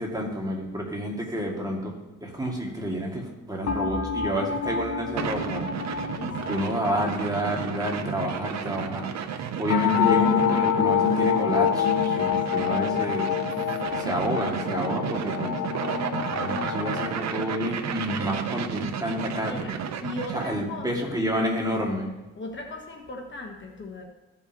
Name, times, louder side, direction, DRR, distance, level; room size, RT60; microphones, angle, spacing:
voice 1, 0.0-1.9 2.2-5.7 6.5-9.1 9.6-13.3 14.0-15.6 16.3-19.8 20.3-22.1, equal, 10° right, -1 dB, 2.2 m, -29 dB
sound 1, 3.7-9.0 9.7-17.1, left 8 dB, 55° left, 0.8 m, -27 dB
sound 2, 5.2-20.6, right 7 dB, 60° right, 0.8 m, -32 dB
voice 2, 6.1-6.6 12.3-12.8 19.5-19.7 20.0-21.2 22.3-24.1, left 2 dB, 40° left, 2 dB, 1.3 m, -38 dB
15.5 x 5.6 x 3.0 m, 1.2 s
cardioid pair, 90°, 30 cm